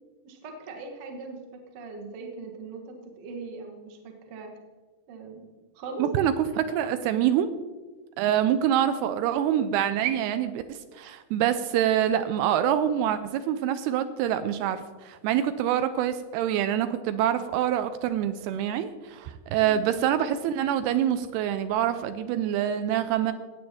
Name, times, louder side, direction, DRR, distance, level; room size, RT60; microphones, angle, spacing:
voice 1, 0.2-1.4 1.7-4.5 5.1-5.4 5.7-6.1 19.6-19.8, right 4 dB, 65° right, 3 dB, 1.4 m, -40 dB
voice 2, 6.0-7.5 8.2-23.3, right 10 dB, 80° right, 11 dB, 2.4 m, -26 dB
15.5 x 8.7 x 3.5 m, 1.3 s
omnidirectional pair, 4.7 m